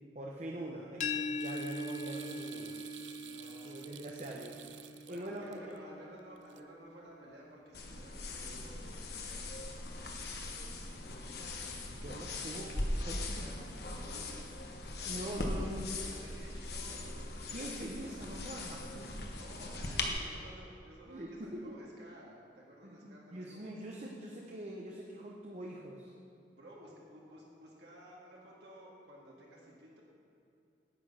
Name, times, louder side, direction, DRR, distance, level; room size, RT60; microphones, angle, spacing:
voice 1, 0.1-2.8 3.6-4.7 5.1-5.8 12.0-13.7 15.0-16.0 17.5-19.1 21.1-21.3 21.7-21.8 22.8-26.1, right 1 dB, 40° right, -2 dB, 0.8 m, -43 dB
sound 1, 1.0-6.8, left 3 dB, 40° left, 0.5 m, -42 dB
sound 2, 1.4-5.8 6.4-6.6, right 11 dB, 90° right, 0.5 m, -52 dB
voice 2, 3.2-3.8 5.1-9.5 9.9-10.7 13.0-14.5 14.9-15.4 16.0-17.0 19.3-23.7 26.5-30.0, equal, 70° right, -4 dB, 2.0 m, -54 dB
sound 3, 7.7-20.1, left 2 dB, 60° left, 1.1 m, -40 dB
9.9 x 8.3 x 5.6 m, 2.6 s
head